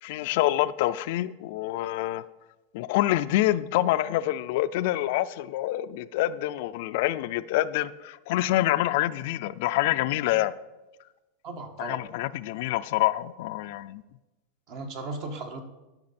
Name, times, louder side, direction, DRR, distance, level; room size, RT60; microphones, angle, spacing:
voice 1, 0.0-2.2 2.7-10.5 11.8-14.0, left 15 dB, 65° left, 0.4 m, -26 dB
voice 2, 11.4-12.0 14.7-15.6, right 3 dB, 50° right, 1.5 m, -36 dB
11.5 x 6.0 x 4.2 m
supercardioid pair, 130°, 0 cm